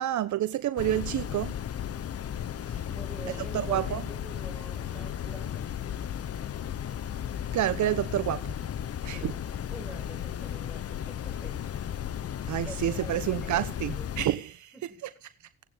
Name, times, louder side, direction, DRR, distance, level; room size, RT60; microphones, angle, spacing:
voice 1, 0.0-1.5 3.5-4.0 7.5-8.4 9.0-9.3 12.5-14.7, right 12 dB, 70° right, 1.1 m, -28 dB
sound 1, 0.8-14.3, left 10 dB, 50° left, 0.9 m, -35 dB
voice 2, 2.9-5.7 9.1-9.4 9.7-11.6 12.6-14.1 14.7-15.0, right 1 dB, ahead, 6.5 m, -47 dB
17.5 x 9.1 x 8.1 m
cardioid pair, 90°, 30 cm